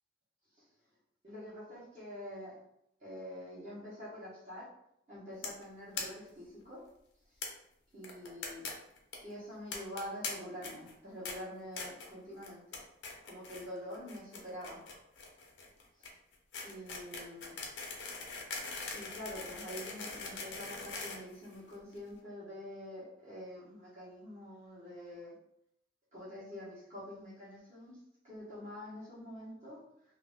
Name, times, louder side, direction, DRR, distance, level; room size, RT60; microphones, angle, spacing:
voice 1, 1.2-2.5 3.0-4.7 5.1-6.8 7.3-7.4 7.9-8.6 9.2-12.8 13.2-14.8 16.0-16.1 16.6-17.5 18.9-25.3 26.1-28.0 28.2-29.8, equal, 35° right, -10 dB, 1.3 m, -46 dB
sound 1, 5.4-5.6 5.9-6.0 6.3-6.4 6.6-6.7 7.4-7.5 8.0-8.7 9.0-9.2 9.7-10.3 10.6-10.9 11.2-11.3 11.8-12.1 12.4-12.8 13.0-13.6 13.9-22.0, left 4 dB, 75° left, 0.8 m, -41 dB
2.9 x 2.6 x 3.5 m, 0.76 s
head